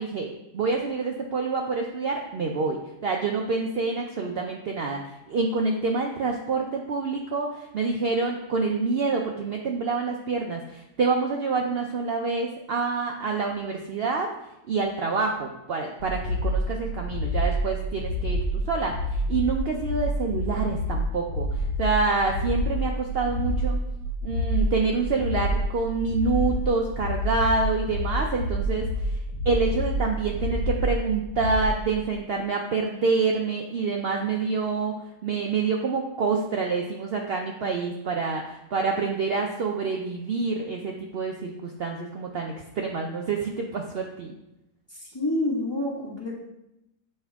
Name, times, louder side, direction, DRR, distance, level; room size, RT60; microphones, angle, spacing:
voice 1, 0.0-5.0 5.3-14.3 14.7-18.4 18.7-23.8 24.2-29.2 29.4-44.3, right 4 dB, 70° right, 1 dB, 0.5 m, -27 dB
sound 1, 16.0-31.8, equal, 65° left, 1.3 m, -28 dB
voice 2, 44.9-46.3, left 1 dB, 15° left, -4 dB, 1.5 m, -28 dB
7.9 x 5.4 x 3.5 m, 0.87 s
omnidirectional pair, 1.8 m